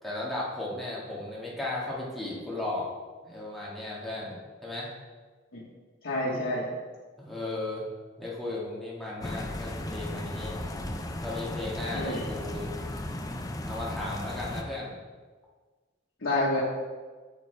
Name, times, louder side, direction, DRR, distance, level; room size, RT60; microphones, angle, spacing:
voice 1, 0.0-2.9 3.2-4.4 4.6-4.9 7.2-7.9 8.2-10.5 11.2-12.7 13.7-15.0, left 2 dB, ahead, -7 dB, 1.9 m, -35 dB
voice 2, 6.0-6.6 11.9-12.2 16.2-16.6, left 1 dB, 90° left, -6 dB, 1.3 m, -28 dB
sound 1, 9.2-14.6, left 1 dB, 20° left, 0.5 m, -35 dB
8.5 x 7.0 x 3.4 m, 1.4 s
head